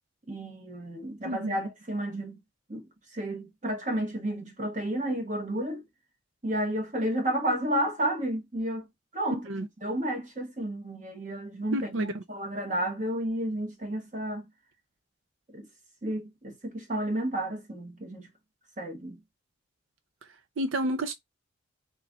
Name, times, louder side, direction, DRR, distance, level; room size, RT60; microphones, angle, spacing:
voice 1, 0.3-2.4 2.7-5.8 6.4-8.9 9.1-14.5 15.5-15.7 16.0-18.3 18.8-19.2, right 1 dB, 35° right, 1.3 m, -32 dB
voice 2, 1.2-1.6 9.5-9.6 11.7-12.2 20.6-21.1, right 1 dB, 75° right, 0.5 m, -30 dB
3.6 x 3.0 x 3.9 m
head